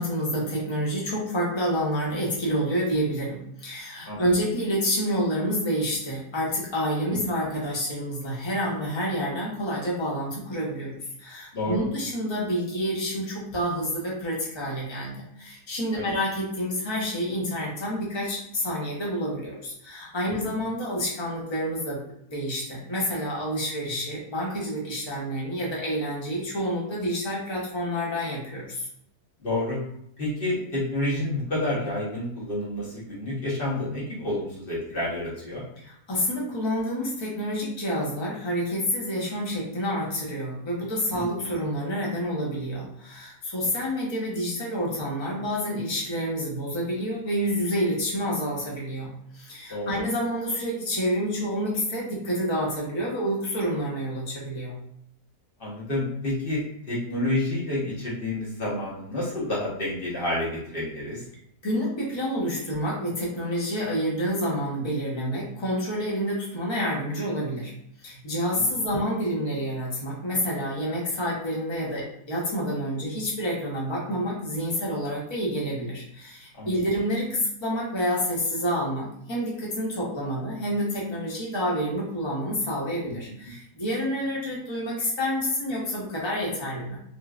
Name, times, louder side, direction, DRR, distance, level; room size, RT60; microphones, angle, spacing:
voice 1, 0.0-22.0 22.3-28.9 35.8-54.7 61.6-67.7 68.0-87.0, equal, 25° left, -4 dB, 0.7 m, -28 dB
voice 2, 29.4-29.8 30.2-35.6 41.1-41.2 49.7-49.9 55.6-61.2 68.5-68.7 76.6-76.8 83.1-83.2 83.4-83.5, left 1 dB, 40° left, -6 dB, 1.2 m, -29 dB
3.2 x 3.1 x 2.4 m, 0.73 s
omnidirectional pair, 1.7 m